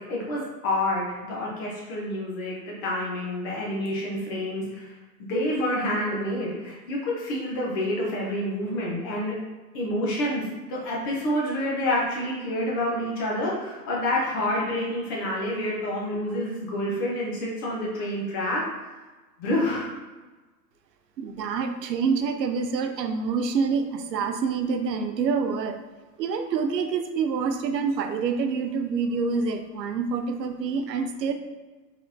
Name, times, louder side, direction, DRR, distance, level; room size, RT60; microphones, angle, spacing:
voice 1, 0.0-4.9 5.2-9.4 9.7-10.4 10.7-18.6 19.4-19.9, left 1 dB, 15° left, -4 dB, 0.4 m, -28 dB
voice 2, 21.2-25.8 26.2-31.3, right 5 dB, 75° right, 7 dB, 0.6 m, -27 dB
3.8 x 3.6 x 2.7 m, 1.2 s
hypercardioid pair, 115°, 50 cm